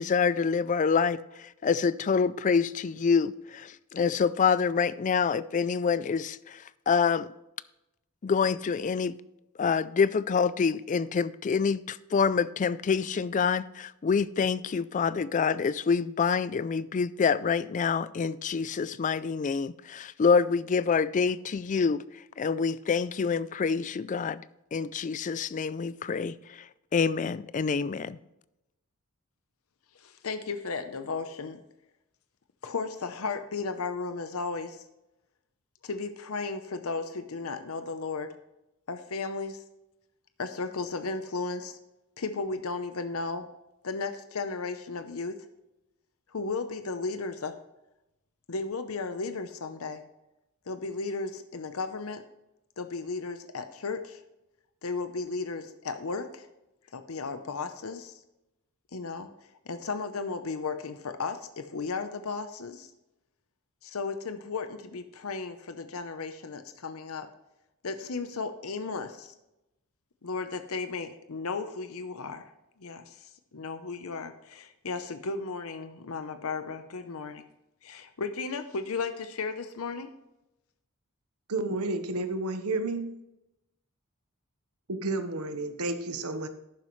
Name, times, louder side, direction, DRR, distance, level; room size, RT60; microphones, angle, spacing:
voice 1, 0.0-7.3 8.2-9.1 9.6-22.0 22.4-24.4 24.7-26.6 26.9-28.2, left 5 dB, 35° left, 0.3 m, -26 dB
voice 2, 29.9-31.6 32.6-34.8 35.8-38.3 38.9-39.6 40.4-41.8 42.2-43.5 43.8-45.3 46.3-47.5 48.5-50.0 50.7-52.2 52.8-54.2 54.8-56.5 56.9-58.2 58.9-59.3 59.7-62.9 63.8-67.3 67.8-69.3 70.2-72.5 72.8-77.5 77.8-80.1, left 4 dB, 70° left, 0.7 m, -35 dB
voice 3, 81.5-83.2 84.9-86.5, right 2 dB, 85° right, 1.1 m, -31 dB
11.5 x 9.3 x 3.1 m
head